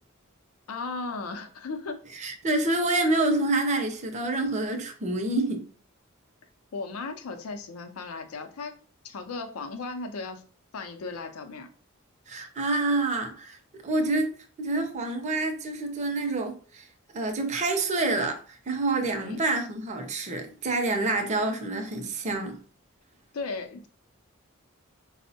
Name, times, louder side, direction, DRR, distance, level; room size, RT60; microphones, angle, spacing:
voice 1, 0.7-2.0 6.7-8.8 9.0-10.4 10.7-11.7 19.2-19.4 23.3-23.9, left 3 dB, 90° left, 0.5 m, -36 dB
voice 2, 2.1-5.7 12.3-13.6 13.8-16.9 17.1-22.6, right 2 dB, 35° right, 0.5 m, -27 dB
4.2 x 2.0 x 2.7 m
head